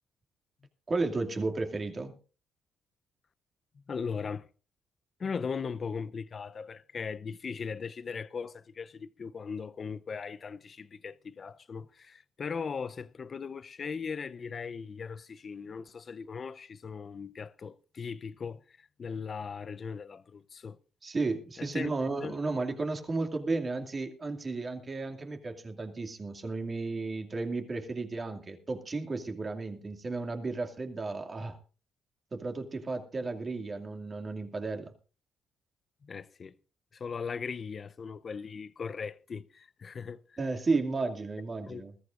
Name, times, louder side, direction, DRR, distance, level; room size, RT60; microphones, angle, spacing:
voice 1, 0.9-2.1 21.0-31.6 32.3-34.9 40.4-41.9, right 3 dB, 35° right, 2.4 m, -33 dB
voice 2, 3.9-4.5 5.2-20.8 21.6-21.9 22.2-22.4 36.0-36.6 36.9-40.4 41.7-41.8, left 5 dB, 45° left, 0.6 m, -38 dB
21.0 x 14.0 x 2.5 m
cardioid pair, 90°, 0 cm